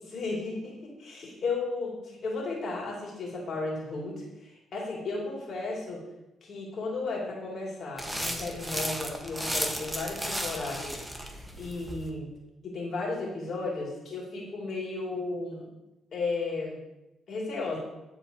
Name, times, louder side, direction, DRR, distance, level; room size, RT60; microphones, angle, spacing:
voice 1, 0.1-6.0 6.4-11.0 11.6-12.3 12.6-15.7 16.1-16.8 17.3-17.8, left 3 dB, 60° left, -3 dB, 2.6 m, -34 dB
sound 1, 8.0-12.1, equal, 5° right, 1.1 m, -34 dB
12.0 x 4.1 x 2.8 m, 0.96 s
supercardioid pair, 65°, 0 cm